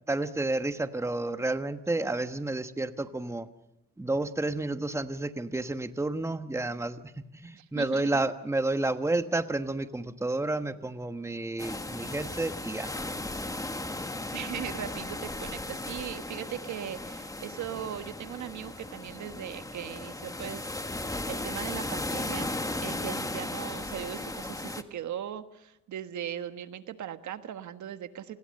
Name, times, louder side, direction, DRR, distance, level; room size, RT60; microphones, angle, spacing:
voice 1, 0.1-3.5 4.0-7.0 7.4-12.9, right 2 dB, 10° right, 10 dB, 1.2 m, -30 dB
voice 2, 7.5-8.1 14.3-20.7 21.3-22.5 22.8-28.4, right 10 dB, 70° right, 10 dB, 1.5 m, -39 dB
sound 1, 11.6-24.8, left 2 dB, 10° left, 1.6 m, -36 dB
29.5 x 20.5 x 6.6 m, 0.85 s
cardioid pair, 90°, 30 cm